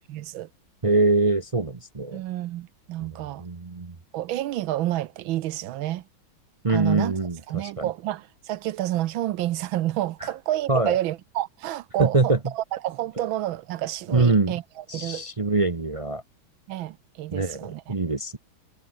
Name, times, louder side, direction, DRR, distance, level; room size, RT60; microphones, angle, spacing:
voice 1, 0.1-0.5 2.1-3.4 4.1-6.1 6.7-7.2 7.5-15.3 16.7-17.9, right 14 dB, 75° right, 1.5 m, -29 dB
voice 2, 0.8-2.2 3.0-3.1 3.4-3.9 6.6-7.9 10.7-11.0 12.0-12.4 14.1-14.6 14.9-16.2 17.3-18.4, right 3 dB, 50° right, 0.4 m, -23 dB
omnidirectional pair, 2.3 m